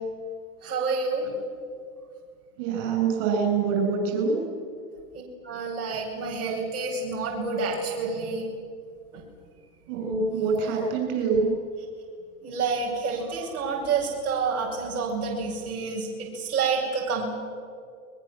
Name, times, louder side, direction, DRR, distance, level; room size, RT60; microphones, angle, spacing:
voice 1, 0.6-1.3 5.4-8.5 9.1-9.2 12.4-17.3, right 4 dB, 75° right, -3 dB, 7.0 m, -28 dB
voice 2, 2.6-4.4 9.9-11.5, right 5 dB, 55° right, 2 dB, 7.7 m, -25 dB
29.5 x 21.5 x 7.6 m, 2.2 s
hypercardioid pair, 100°, 44 cm